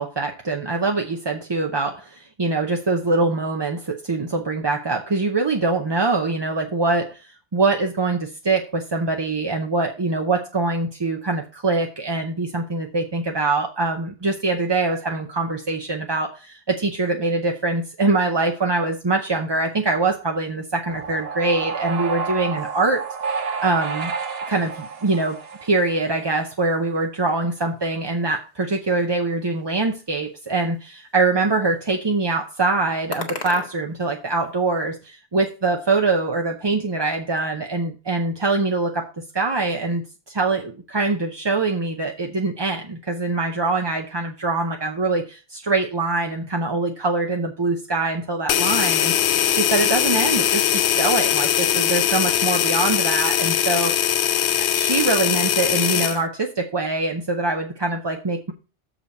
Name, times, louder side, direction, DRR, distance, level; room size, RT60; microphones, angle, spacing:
voice 1, 0.0-23.1 23.3-24.1 24.5-39.1 39.3-54.0 54.6-58.5, right 3 dB, 30° right, 3 dB, 0.6 m, -23 dB
sound 1, 20.9-26.2, right 5 dB, 60° right, 1.1 m, -30 dB
sound 2, 27.5-34.7, left 3 dB, 40° left, 1.4 m, -42 dB
sound 3, 48.5-56.2, left 10 dB, 75° left, 0.9 m, -21 dB
6.9 x 5.0 x 6.3 m, 0.32 s
omnidirectional pair, 1.2 m